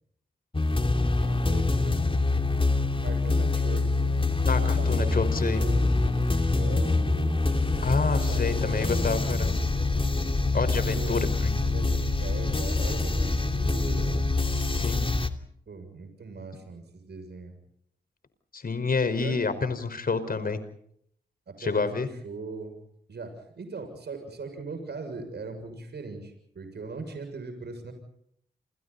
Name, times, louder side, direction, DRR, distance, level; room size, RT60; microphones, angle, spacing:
sound 1, 0.5-15.3, left 3 dB, 30° left, 2.8 m, -25 dB
voice 1, 1.0-2.0 3.0-4.2 4.6-7.4 8.0-9.1 10.9-11.3 11.6-14.4 15.7-17.5 19.2-19.5 20.2-20.5 21.5-22.8 23.1-27.9, right 3 dB, 65° right, 7 dB, 7.1 m, -39 dB
voice 2, 4.4-5.6 7.8-9.6 10.5-11.5 14.8-15.0 18.5-20.6 21.6-22.1, left 4 dB, 55° left, 11 dB, 5.1 m, -28 dB
29.5 x 28.5 x 4.2 m, 0.70 s
cardioid pair, 55°, 18 cm